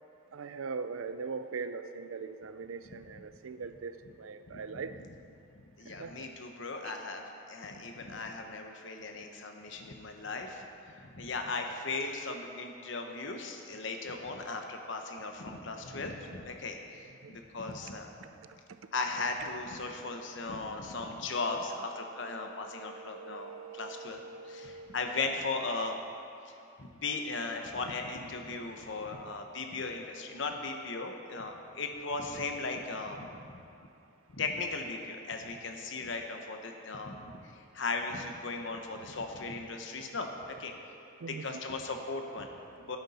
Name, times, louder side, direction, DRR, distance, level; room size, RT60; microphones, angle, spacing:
voice 1, 0.3-5.0 5.8-6.3 6.8-6.9 17.2-17.4 22.1-25.0 39.7-40.1 40.7-41.6 42.7-42.8, right 5 dB, 90° right, 11 dB, 0.5 m, -42 dB
voice 2, 4.5-5.1 5.8-18.1 18.9-24.2 24.4-26.0 26.4-26.5 26.8-33.5 34.3-40.7 41.3-42.5 42.8-43.0, left 3 dB, 65° left, 4 dB, 0.9 m, -37 dB
11.0 x 8.8 x 4.2 m, 2.6 s
head